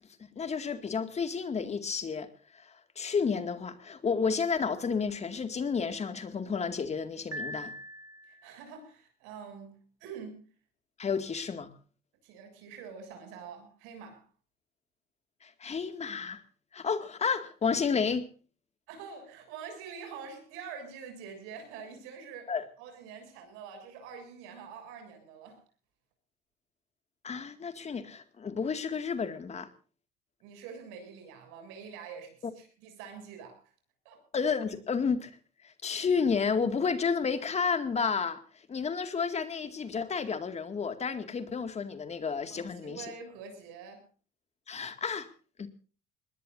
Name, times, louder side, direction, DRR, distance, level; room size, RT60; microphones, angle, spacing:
voice 1, 0.4-7.7 11.0-11.7 15.4-16.4 16.7-18.3 22.5-22.6 27.2-29.7 34.3-35.3 35.6-43.1 44.7-45.3 45.6-45.7, left 5 dB, 30° left, 2.2 m, -31 dB
Piano, 7.3-8.6, equal, 15° right, 2.5 m, -41 dB
voice 2, 8.3-10.5 12.2-14.2 18.9-22.5 22.8-25.6 30.4-33.6 34.0-34.2 42.5-44.0, right 6 dB, 85° right, 7.4 m, -46 dB
23.0 x 20.0 x 2.7 m
supercardioid pair, 105°, 21 cm